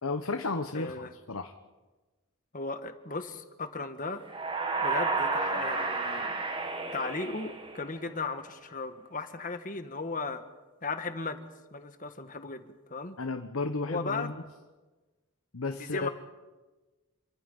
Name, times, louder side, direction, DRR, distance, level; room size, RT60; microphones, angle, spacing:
voice 1, 0.0-1.5 13.2-14.3 15.5-16.1, left 3 dB, 80° left, 6 dB, 1.2 m, -33 dB
voice 2, 0.7-1.1 2.5-4.2 4.8-6.4 6.9-10.4 10.8-13.2 13.9-14.3 15.7-16.1, left 3 dB, 40° left, 8 dB, 1.6 m, -36 dB
sound 1, 4.2-8.1, right 3 dB, 25° right, 1.9 m, -31 dB
28.0 x 24.0 x 5.5 m, 1.2 s
head